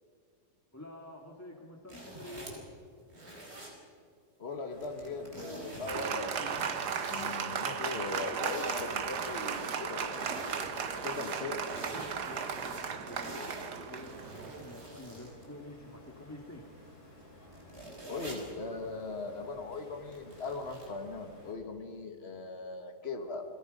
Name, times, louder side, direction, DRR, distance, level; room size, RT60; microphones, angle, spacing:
voice 1, 0.7-2.7 12.3-16.6, left 1 dB, 10° left, 0 dB, 2.0 m, -49 dB
sound 1, 1.9-2.7 3.1-3.7 4.8-6.0 6.3-7.3 7.7-15.4 16.0-16.1 17.2-17.3 17.5-18.6 20.1-20.9, right 1 dB, 40° right, 4.9 m, -46 dB
voice 2, 4.4-6.7 7.1-10.3 11.0-11.6 18.1-23.4, left 3 dB, 40° left, 4 dB, 2.2 m, -39 dB
sound 2, 4.7-21.5, left 1 dB, 80° left, 7.0 m, -54 dB
Applause, 5.9-14.9, right 6 dB, 80° right, 1.8 m, -36 dB
29.5 x 21.5 x 5.3 m, 2.2 s
omnidirectional pair, 1.7 m